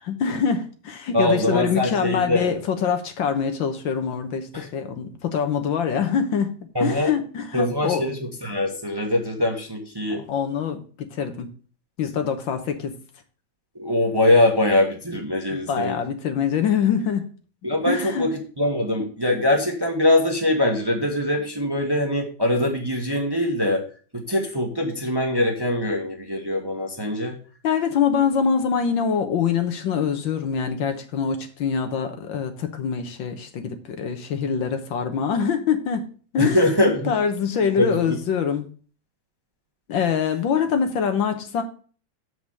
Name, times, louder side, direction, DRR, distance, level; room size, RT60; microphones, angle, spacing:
voice 1, 0.0-6.5 6.8-8.1 10.3-11.5 12.0-12.9 15.5-17.3 17.9-18.3 27.6-36.1 36.3-36.6 36.9-38.7 39.9-41.6, left 7 dB, 80° left, 7 dB, 1.8 m, -24 dB
voice 2, 1.1-2.5 4.5-4.7 6.7-7.2 7.5-10.2 13.7-16.0 17.6-23.8 24.1-27.3 36.4-37.1 37.8-38.2, left 1 dB, 15° right, 1 dB, 1.1 m, -22 dB
7.1 x 4.9 x 6.3 m, 0.40 s
omnidirectional pair, 2.1 m